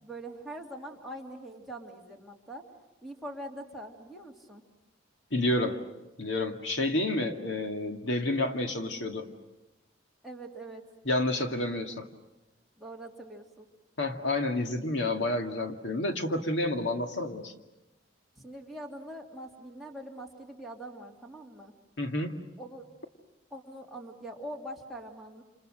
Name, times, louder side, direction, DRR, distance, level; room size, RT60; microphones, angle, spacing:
voice 1, 0.0-2.6 3.0-4.6 10.2-10.8 12.8-13.7 18.4-21.7 22.6-22.8 23.5-25.4, right 1 dB, ahead, -2 dB, 3.0 m, -43 dB
voice 2, 5.3-5.8 6.2-9.3 11.0-12.0 14.0-17.5 22.0-22.4, left 2 dB, 70° left, 4 dB, 2.2 m, -29 dB
29.0 x 28.5 x 6.5 m, 1.0 s
head